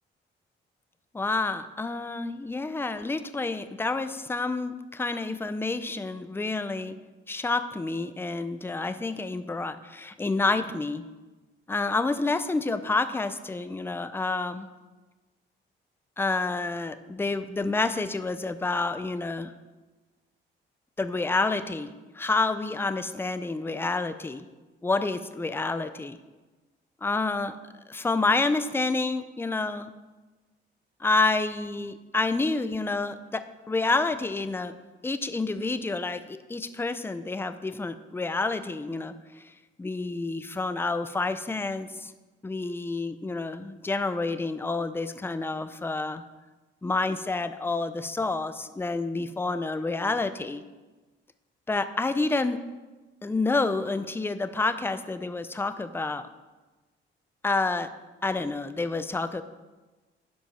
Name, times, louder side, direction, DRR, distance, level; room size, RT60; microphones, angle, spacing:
voice 1, 1.1-7.0 7.3-11.0 11.7-14.7 16.2-19.5 21.0-24.5 24.8-26.2 27.0-27.6 27.9-29.9 31.0-34.7 35.0-39.4 39.8-42.1 42.4-46.2 46.8-50.6 51.7-52.6 53.2-56.2 57.4-57.9 58.2-59.4, left 3 dB, 10° left, 11 dB, 0.5 m, -29 dB
10.0 x 5.2 x 5.7 m, 1.2 s
cardioid pair, 90°, 20 cm